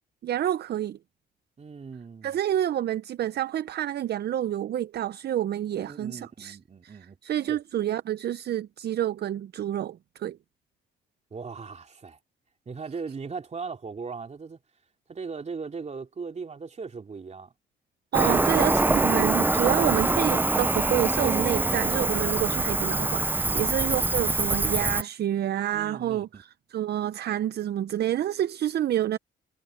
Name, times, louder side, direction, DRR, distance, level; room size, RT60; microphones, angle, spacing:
voice 1, 0.2-1.0 2.2-6.6 6.8-10.4 18.1-29.2, right 11 dB, 55° right, 0.6 m, -28 dB
voice 2, 1.6-2.4 5.7-7.2 7.5-7.6 11.3-12.2 12.7-14.6 15.1-17.5 18.3-18.6 23.5-23.7 25.7-26.4, right 5 dB, 35° right, 3.1 m, -38 dB
Cricket, 18.1-25.0, right 2 dB, 10° right, 0.4 m, -24 dB
cardioid pair, 90°, 20 cm